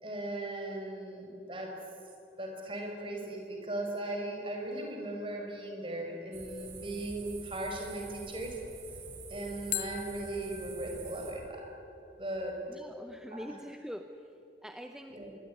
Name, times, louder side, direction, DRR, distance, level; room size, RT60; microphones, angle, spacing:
voice 1, 0.0-1.8 2.4-8.6 9.3-11.7 12.2-12.6 13.3-13.4 15.1-15.3, right 1 dB, 30° right, 1 dB, 5.7 m, -38 dB
sound 1, 1.7-2.7 9.7-12.7, left 13 dB, 45° left, 0.6 m, -43 dB
sound 2, 6.3-11.3, right 4 dB, 80° right, 6.5 m, -47 dB
voice 2, 12.7-14.3 14.6-15.2, equal, 5° right, 6 dB, 0.8 m, -44 dB
26.5 x 23.0 x 9.6 m, 3.0 s
head